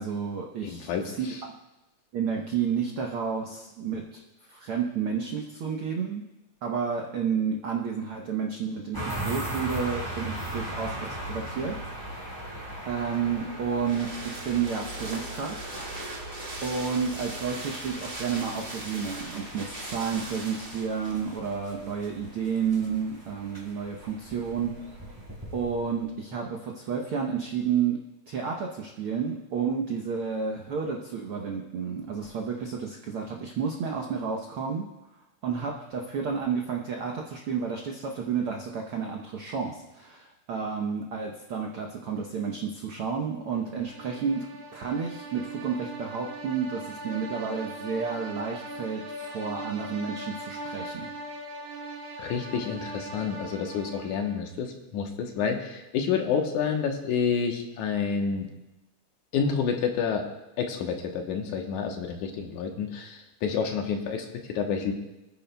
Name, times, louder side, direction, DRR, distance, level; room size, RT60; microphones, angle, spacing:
voice 1, 0.0-1.3 2.1-4.2 4.5-6.2 6.6-12.4 12.9-15.6 16.6-24.8 25.5-28.0 28.3-34.9 35.4-44.5 44.7-51.1, right 6 dB, 80° right, 1 dB, 1.2 m, -31 dB
voice 2, 0.6-1.4 52.2-58.5 59.3-60.3 60.6-64.9, left 6 dB, 70° left, 3 dB, 2.4 m, -29 dB
sound 1, 8.9-26.2, right 1 dB, 5° right, 3.2 m, -39 dB
sound 2, 13.7-21.2 21.5-21.6, right 1 dB, 30° right, 1.1 m, -40 dB
sound 3, 43.6-54.6, right 1 dB, 65° right, 1.8 m, -40 dB
28.5 x 9.9 x 2.3 m, 0.98 s
omnidirectional pair, 3.8 m